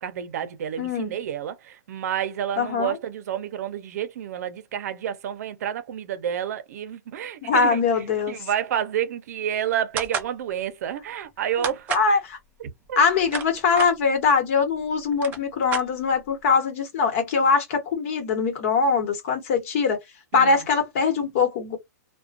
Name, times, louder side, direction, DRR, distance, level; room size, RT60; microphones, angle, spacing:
voice 1, 0.0-7.8 8.3-11.9 12.9-13.0 20.3-20.6, right 9 dB, 60° right, 0.6 m, -29 dB
voice 2, 0.8-1.2 2.6-3.0 7.4-8.4 11.9-12.4 13.0-20.0 20.3-21.8, left 5 dB, 45° left, 1.0 m, -22 dB
sound 1, 10.0-10.3 11.6-12.1 13.0-13.9 14.8-14.9 15.1-16.3, right 7 dB, 15° right, 0.4 m, -30 dB
2.4 x 2.2 x 2.4 m
supercardioid pair, 165°, 10 cm